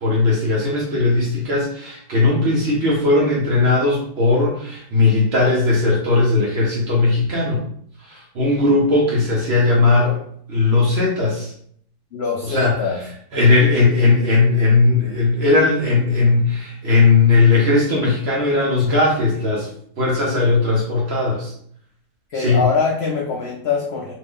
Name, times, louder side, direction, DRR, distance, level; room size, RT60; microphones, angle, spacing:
voice 1, 0.0-7.6 8.1-10.2 10.5-11.5 12.4-12.8 13.3-19.7 20.0-21.5 22.4-22.6, left 3 dB, 55° right, -2 dB, 0.8 m, -17 dB
voice 2, 12.1-13.0 22.3-24.2, left 4 dB, 75° left, -1 dB, 0.6 m, -23 dB
2.6 x 2.5 x 3.5 m, 0.63 s
omnidirectional pair, 1.7 m